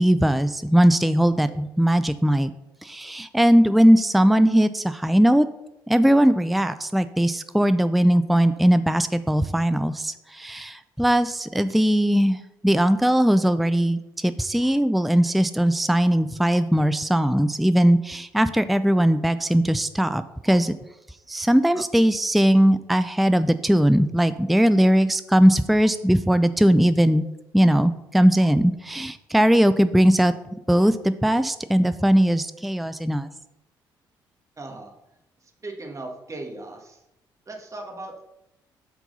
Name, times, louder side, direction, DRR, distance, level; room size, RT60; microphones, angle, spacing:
voice 1, 0.0-2.5 2.8-5.5 5.9-20.7 21.3-27.2 27.5-30.3 30.7-33.3, equal, ahead, 12 dB, 0.4 m, -19 dB
voice 2, 34.6-34.9 35.4-37.0 37.5-38.2, right 2 dB, 30° right, 2 dB, 1.8 m, -38 dB
7.6 x 4.6 x 5.5 m, 0.87 s
hypercardioid pair, 50°, 11 cm